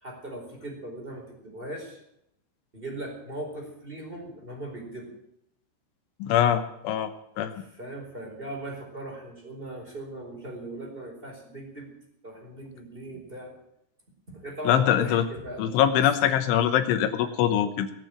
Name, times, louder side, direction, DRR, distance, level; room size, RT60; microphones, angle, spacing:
voice 1, 0.0-2.0 2.7-5.1 7.3-7.5 7.8-11.9 12.2-13.5 14.3-16.0, right 1 dB, 10° right, 1 dB, 3.9 m, -39 dB
voice 2, 6.2-7.1 7.4-7.5 14.6-15.3 15.6-17.9, left 10 dB, 75° left, 9 dB, 3.3 m, -23 dB
21.0 x 7.8 x 9.0 m, 0.78 s
omnidirectional pair, 5.9 m